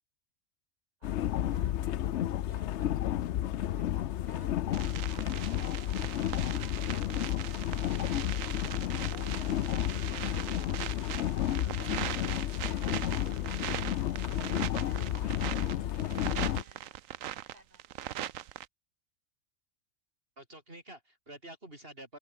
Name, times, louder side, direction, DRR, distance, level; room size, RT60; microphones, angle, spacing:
sound 1, 1.0-16.6, left 12 dB, 65° left, 0.9 m, -32 dB
voice 1, 1.0-3.1 3.6-7.5 9.6-10.8 12.2-14.2 14.8-17.0 17.4-17.8, right 1 dB, 30° right, 7.2 m, -58 dB
sound 2, 4.7-18.7, right 12 dB, 80° right, 1.1 m, -40 dB
voice 2, 9.1-9.9 11.8-11.9 20.4-22.2, right 1 dB, 45° right, 5.6 m, -49 dB
open air
omnidirectional pair, 1.3 m